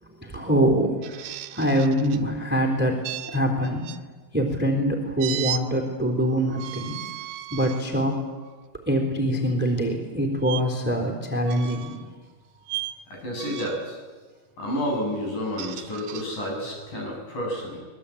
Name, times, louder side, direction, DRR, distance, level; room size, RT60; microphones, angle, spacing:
voice 1, 0.0-3.0 3.3-3.9 4.3-6.9 7.5-8.2 8.9-12.0, equal, 5° right, 3 dB, 2.9 m, -24 dB
sound 1, 1.0-2.2 3.0-4.0 5.2-5.6 6.5-7.8 8.4-8.6 10.4-10.6 11.5-12.0 12.7-13.0 13.4-13.9 15.3-16.3, right 13 dB, 80° right, 2.8 m, -35 dB
voice 2, 13.1-14.0 14.6-17.8, equal, 55° left, -1 dB, 9.0 m, -30 dB
25.5 x 22.0 x 8.6 m, 1.4 s
omnidirectional pair, 4.5 m